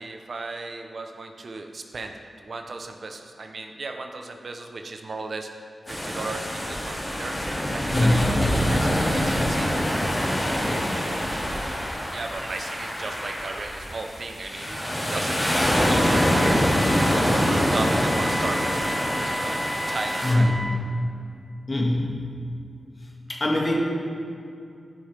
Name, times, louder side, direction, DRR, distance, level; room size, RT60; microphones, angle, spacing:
voice 1, 0.0-2.1 2.4-5.5 5.9-7.4 7.7-9.7 12.1-20.5, right 3 dB, 65° right, 4 dB, 0.7 m, -35 dB
sound 1, 5.9-20.3, equal, 20° left, 2.1 m, -25 dB
voice 2, 7.9-8.3 10.6-10.9 20.2-20.8 21.7-22.3 23.3-23.8, left 1 dB, 40° left, -2 dB, 1.9 m, -23 dB
Wind instrument woodwind instrument, 15.8-20.8, equal, 5° right, 0.5 m, -33 dB
14.0 x 5.7 x 3.4 m, 2.4 s
cardioid pair, 60°, 0 cm